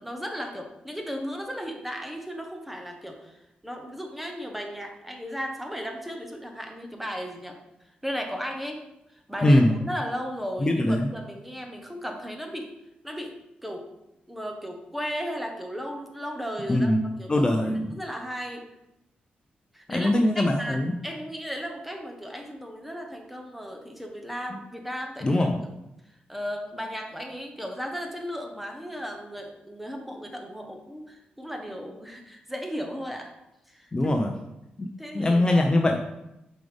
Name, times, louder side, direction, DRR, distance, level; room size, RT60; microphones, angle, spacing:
voice 1, 0.0-7.6 8.0-8.8 9.3-12.7 13.0-13.4 13.6-13.9 14.3-16.9 17.2-17.5 17.9-18.6 19.7-25.7 26.3-33.3 33.7-33.9 35.0-35.6, equal, 5° right, 3 dB, 1.2 m, -35 dB
voice 2, 9.4-9.8 10.6-11.1 16.7-17.0 17.3-18.0 19.9-21.0 25.2-25.6 33.9-34.3 34.8-34.9 35.1-36.0, left 1 dB, 25° left, 3 dB, 0.7 m, -22 dB
7.7 x 5.1 x 3.5 m, 0.89 s
cardioid pair, 80°, 3 cm